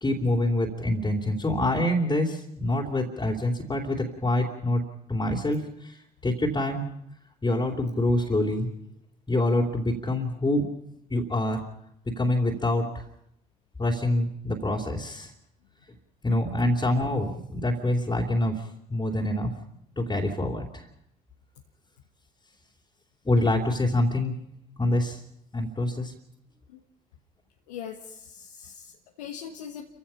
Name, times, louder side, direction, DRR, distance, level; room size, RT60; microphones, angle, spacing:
voice 1, 0.0-4.8 5.1-6.0 6.2-6.8 7.4-8.7 9.3-10.7 11.1-11.6 12.1-13.0 13.8-15.3 16.2-18.6 18.9-19.5 20.0-20.9 23.2-24.3 24.8-25.2 25.5-26.1, left 1 dB, 20° left, -1 dB, 3.1 m, -26 dB
voice 2, 27.7-28.9 29.2-29.9, left 8 dB, 85° left, 1 dB, 1.4 m, -40 dB
29.5 x 16.0 x 5.7 m, 0.77 s
hypercardioid pair, 50°, 20 cm